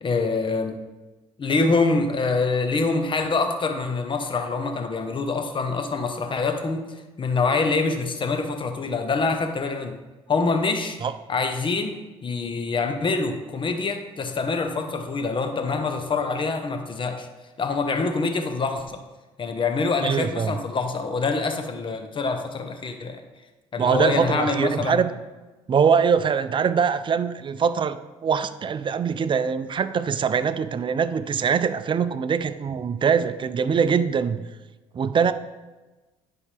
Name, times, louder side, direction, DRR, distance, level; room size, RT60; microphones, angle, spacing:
voice 1, 0.0-0.8 1.4-10.0 10.3-11.0 11.3-11.9 12.2-17.3 17.6-19.0 19.4-23.2 23.7-25.1, left 3 dB, 40° left, 6 dB, 1.0 m, -25 dB
voice 2, 20.0-20.5 23.8-25.1 25.7-28.0 28.2-34.4 34.9-35.3, right 6 dB, 35° right, 12 dB, 0.5 m, -23 dB
9.9 x 4.7 x 3.4 m, 1.1 s
supercardioid pair, 70°, 14 cm